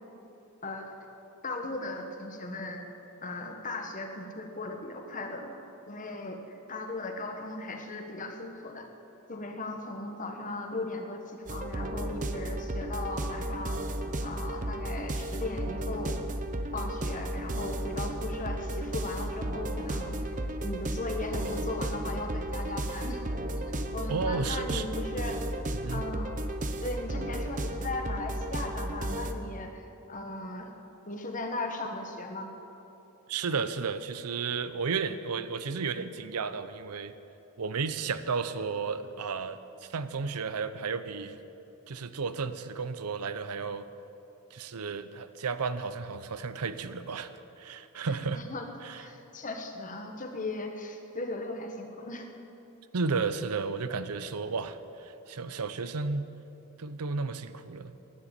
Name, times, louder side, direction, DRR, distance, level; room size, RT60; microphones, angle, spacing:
voice 1, 1.4-2.8 3.2-8.9 9.3-13.8 14.2-16.2 16.7-20.2 20.6-23.2 23.6-25.4 25.9-26.4 26.8-30.7 31.1-32.5 48.3-48.7 49.0-52.3, left 2 dB, 35° left, 4 dB, 1.3 m, -37 dB
sound 1, 11.5-29.3, right 1 dB, 35° right, 0.7 m, -34 dB
voice 2, 24.1-24.9 25.8-26.0 33.3-37.1 37.6-39.6 39.9-41.4 41.9-43.9 44.5-48.4 48.8-49.0 52.9-56.3 56.8-57.9, right 4 dB, 85° right, 12 dB, 0.7 m, -33 dB
11.0 x 10.0 x 8.9 m, 2.9 s
head